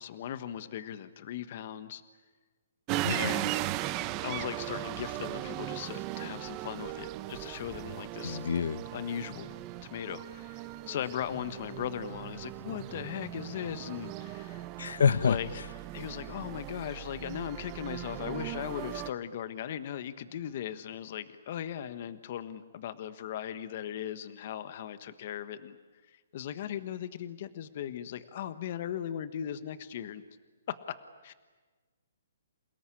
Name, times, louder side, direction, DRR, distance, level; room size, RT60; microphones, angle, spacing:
voice 1, 0.0-2.0 3.1-3.6 4.2-8.4 8.9-9.6 9.9-14.7 15.2-15.5 15.9-25.8 26.1-30.2 30.7-31.0 31.2-31.3, left 10 dB, 45° left, 12 dB, 1.4 m, -38 dB
sound 1, 2.9-19.1, right 15 dB, 25° right, 0.8 m, -38 dB
voice 2, 8.2-8.8 14.8-15.4, left 6 dB, 75° left, 18 dB, 0.8 m, -26 dB
28.5 x 18.5 x 10.0 m, 1.4 s
hypercardioid pair, 160°, 0 cm